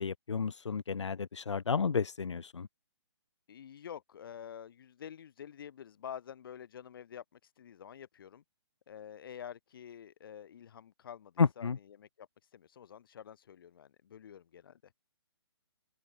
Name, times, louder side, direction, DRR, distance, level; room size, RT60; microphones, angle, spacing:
voice 1, 0.0-2.7 11.4-11.8, left 5 dB, 90° left, 1.5 m, -31 dB
voice 2, 3.5-8.4 8.9-12.3 12.5-14.8, left 9 dB, 50° left, 6.3 m, -48 dB
hypercardioid pair, 160°, 15 cm